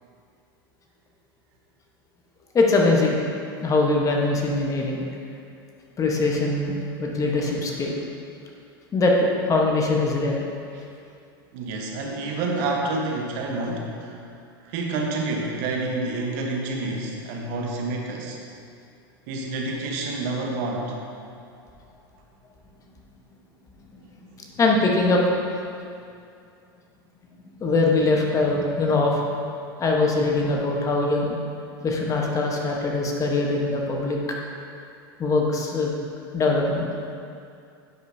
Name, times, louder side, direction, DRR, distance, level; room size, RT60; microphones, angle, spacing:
voice 1, 2.5-3.2 3.6-5.0 6.0-7.9 8.9-10.4 24.6-25.2 27.6-29.3 29.8-31.4 31.8-34.2 35.2-36.0 36.3-36.9, left 3 dB, 25° left, -1 dB, 1.1 m, -22 dB
voice 2, 11.5-14.2 14.6-18.4 19.3-21.0, right 2 dB, 60° right, 0 dB, 1.1 m, -28 dB
10.0 x 5.5 x 2.7 m, 2.5 s
hypercardioid pair, 105°, 13 cm